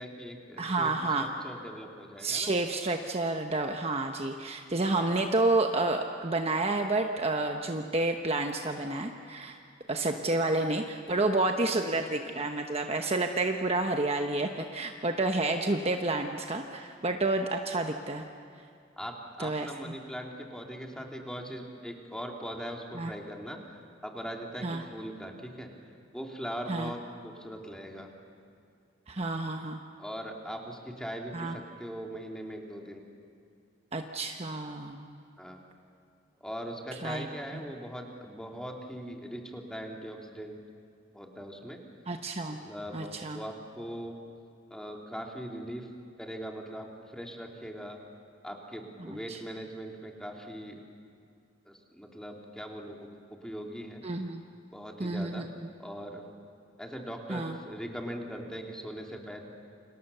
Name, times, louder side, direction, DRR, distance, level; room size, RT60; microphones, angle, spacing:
voice 1, 0.0-2.5 5.0-5.2 19.0-25.7 26.1-28.1 30.0-33.0 35.4-35.6 36.4-40.5 41.1-41.8 42.5-44.2 44.7-45.9 46.2-48.0 48.4-50.8 51.6-53.1 53.4-54.0 54.7-55.4 55.8-56.2 56.8-59.4, equal, 5° left, 1 dB, 2.8 m, -40 dB
voice 2, 0.6-1.3 2.2-9.6 9.9-18.2 19.4-19.9 22.9-23.1 24.6-24.8 26.7-26.9 29.1-29.8 31.3-31.5 33.9-35.1 37.0-37.3 42.1-42.6 42.9-43.4 49.1-49.4 54.0-54.4 55.0-55.5 57.3-57.6, right 2 dB, 30° right, 4 dB, 1.1 m, -30 dB
29.5 x 26.0 x 6.9 m, 2.4 s
head